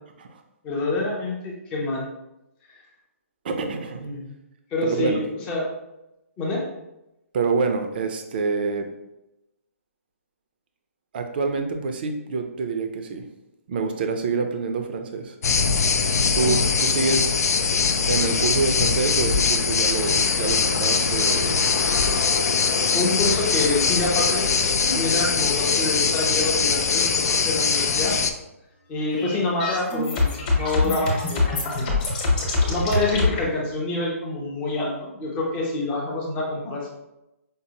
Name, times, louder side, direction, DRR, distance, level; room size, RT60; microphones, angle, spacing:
voice 1, 0.6-2.1 4.0-4.2 4.7-5.6 6.4-6.7 16.4-16.9 22.9-24.5 24.9-28.2 28.9-31.9 32.7-36.9, left 2 dB, 15° left, -2 dB, 0.5 m, -27 dB
voice 2, 3.4-4.0 4.8-5.2 7.3-8.9 11.1-13.2 13.7-15.4 16.3-17.3 18.1-21.6, right 4 dB, 40° right, 5 dB, 0.4 m, -26 dB
sound 1, 15.4-28.3, left 5 dB, 85° left, 0.4 m, -22 dB
sound 2, 29.1-33.4, left 3 dB, 30° left, 0.9 m, -24 dB
5.2 x 2.1 x 2.8 m, 0.91 s
hypercardioid pair, 165°, 8 cm